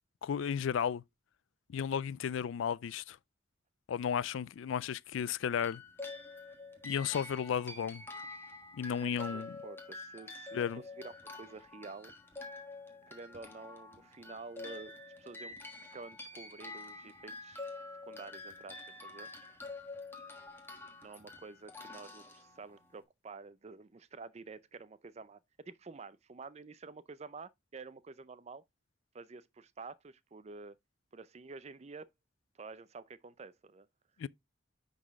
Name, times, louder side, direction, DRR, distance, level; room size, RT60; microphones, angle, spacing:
voice 1, 0.2-1.0 1.7-3.2 3.9-5.8 6.8-8.0 8.7-9.5 10.5-10.8 34.2-34.3, left 8 dB, 75° left, 0.3 m, -34 dB
sound 1, 5.6-23.0, left 2 dB, 10° left, 1.3 m, -47 dB
voice 2, 8.9-10.7 11.0-12.1 13.1-15.6 15.9-17.7 18.1-19.3 21.0-28.6 29.1-30.8 31.1-32.1 32.6-33.9, right 4 dB, 35° right, 0.5 m, -49 dB
9.8 x 4.1 x 3.5 m
head